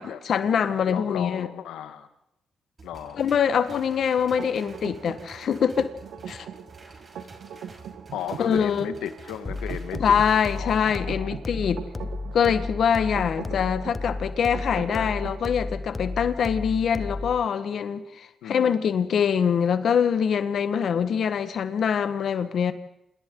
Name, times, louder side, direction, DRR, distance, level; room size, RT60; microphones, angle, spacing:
voice 1, 0.2-1.5 3.2-5.9 6.3-6.5 8.4-8.9 10.0-11.8 12.3-22.7, left 7 dB, 70° left, 11 dB, 1.5 m, -24 dB
voice 2, 0.8-2.1 2.8-3.2 8.1-10.2 10.5-11.4 13.4-13.7 14.7-15.1 18.4-18.9, left 10 dB, 85° left, 10 dB, 1.6 m, -35 dB
sound 1, 2.8-10.8, right 3 dB, 45° right, 5.9 m, -48 dB
sound 2, 4.4-15.5, right 8 dB, 80° right, 1.3 m, -41 dB
sound 3, 9.5-17.5, left 3 dB, 30° left, 0.9 m, -33 dB
29.0 x 26.5 x 3.9 m, 0.82 s
supercardioid pair, 55°, 0 cm